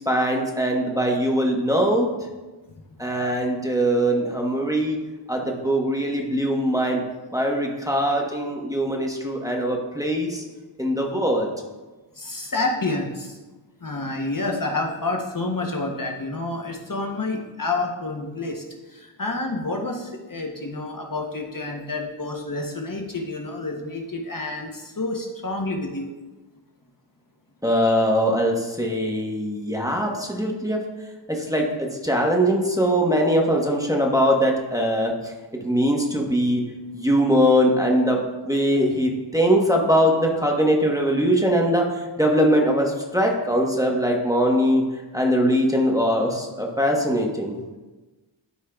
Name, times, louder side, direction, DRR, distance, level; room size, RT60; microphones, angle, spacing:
voice 1, 0.1-2.1 3.0-5.0 5.3-7.0 7.3-10.4 10.8-11.5 27.6-30.8 31.3-35.3 35.6-36.6 36.9-44.8 45.1-47.5, equal, 5° right, 0 dB, 1.0 m, -21 dB
voice 2, 12.1-13.4 13.8-26.1, left 2 dB, 40° left, 1 dB, 0.8 m, -29 dB
12.0 x 4.6 x 2.3 m, 1.2 s
wide cardioid pair, 50°, 50 cm